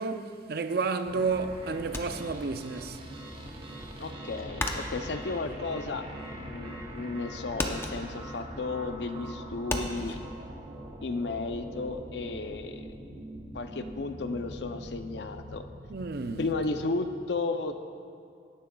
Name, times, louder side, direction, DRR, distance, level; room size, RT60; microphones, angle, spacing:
voice 1, 0.0-3.0 15.9-16.5, right 4 dB, 60° right, 0.5 m, -31 dB
sound 1, 1.0-16.8, right 1 dB, 30° right, 1.0 m, -43 dB
sound 2, 1.9-3.0 3.3-6.5 6.9-7.3 7.5-10.2, left 1 dB, 15° left, 0.6 m, -35 dB
voice 2, 4.0-6.0 6.3-10.2 11.0-12.9 13.5-15.6 16.4-17.8, left 3 dB, 65° left, 0.5 m, -33 dB
17.5 x 10.0 x 2.3 m
head